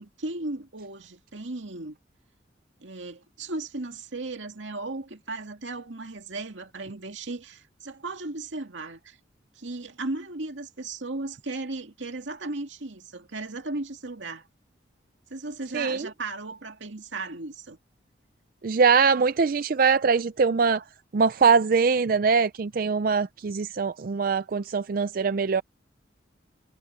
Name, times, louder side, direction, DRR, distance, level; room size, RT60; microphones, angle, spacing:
voice 1, 0.0-2.0 2.8-9.2 9.6-14.5 15.3-17.8, right 2 dB, 85° right, 2.2 m, -36 dB
voice 2, 15.7-16.1 18.6-20.8 21.1-25.6, right 5 dB, 50° right, 0.4 m, -22 dB
head